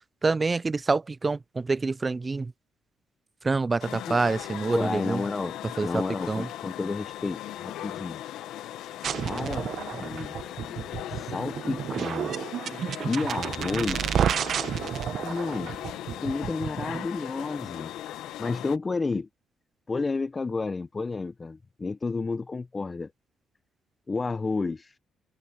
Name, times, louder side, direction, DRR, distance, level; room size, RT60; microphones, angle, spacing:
voice 1, 0.2-2.5 3.4-5.2 5.8-6.5, right 3 dB, 25° right, 0.3 m, -27 dB
sound 1, 3.8-18.8, left 13 dB, 85° left, 0.9 m, -39 dB
voice 2, 4.7-5.6 5.8-8.2 9.2-10.4 11.1-12.3 13.0-14.3 15.2-15.7 16.2-19.3 19.9-23.1 24.1-25.0, left 3 dB, 30° left, 0.7 m, -31 dB
sound 2, 9.0-17.0, right 8 dB, 60° right, 1.0 m, -31 dB
open air
cardioid pair, 90°, 0 cm